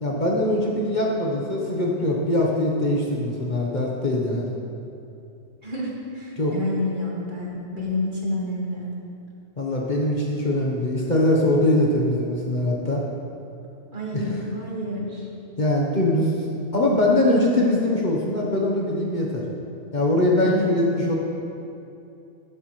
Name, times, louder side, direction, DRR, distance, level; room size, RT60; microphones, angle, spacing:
voice 1, 0.0-4.6 6.4-6.5 9.6-13.0 14.1-14.3 15.6-16.3 16.7-19.4 19.9-21.1, left 1 dB, 40° left, -2 dB, 1.1 m, -22 dB
voice 2, 5.6-8.9 13.9-15.3 20.4-21.2, left 1 dB, 40° right, -5 dB, 2.0 m, -29 dB
11.0 x 11.0 x 3.2 m, 2.8 s
omnidirectional pair, 1.2 m